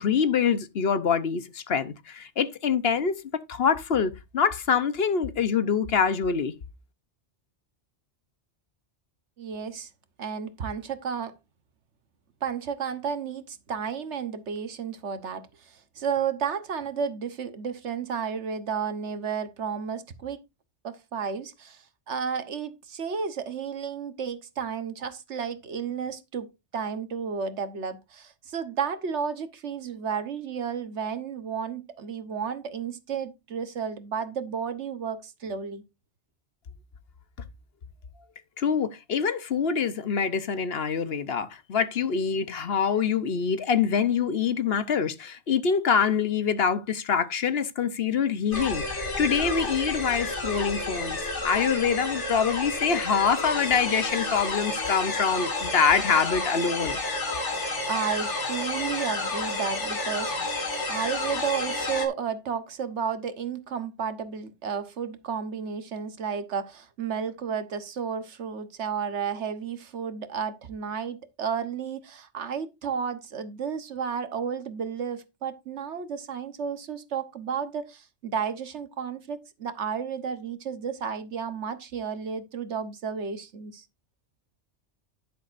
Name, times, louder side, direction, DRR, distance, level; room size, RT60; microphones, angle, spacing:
voice 1, 0.0-3.2 3.5-6.5 38.6-57.0, left 6 dB, 60° left, 1.1 m, -25 dB
voice 2, 9.4-9.9 10.2-11.3 12.4-20.4 20.8-35.8 57.9-60.3 60.9-83.8, right 6 dB, 75° right, 1.4 m, -32 dB
sound 1, 48.5-62.1, left 2 dB, 75° left, 2.7 m, -30 dB
10.5 x 10.5 x 2.6 m
omnidirectional pair, 1.2 m